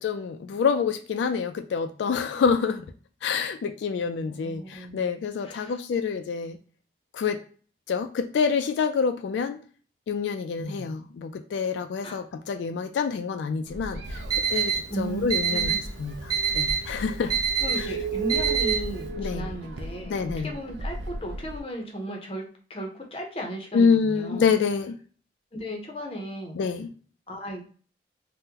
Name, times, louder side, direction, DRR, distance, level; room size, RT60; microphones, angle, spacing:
voice 1, 0.0-2.9 3.2-6.6 7.1-7.4 7.9-9.6 10.1-14.2 14.5-15.7 16.0-17.4 17.8-17.9 19.2-19.5 20.1-20.5 23.7-25.0 26.5-26.9, left 5 dB, 85° left, 8 dB, 0.3 m, -27 dB
voice 2, 4.0-5.1 5.4-5.8 10.6-10.9 12.0-12.2 14.9-15.8 17.2-17.3 17.6-24.5 25.5-26.6 27.3-27.6, right 1 dB, 30° left, 2 dB, 0.6 m, -36 dB
sound 1, 13.7-21.6, right 3 dB, 85° right, 0.5 m, -35 dB
Alarm, 14.1-19.1, right 7 dB, 20° right, 0.4 m, -27 dB
3.6 x 2.1 x 2.8 m, 0.42 s
head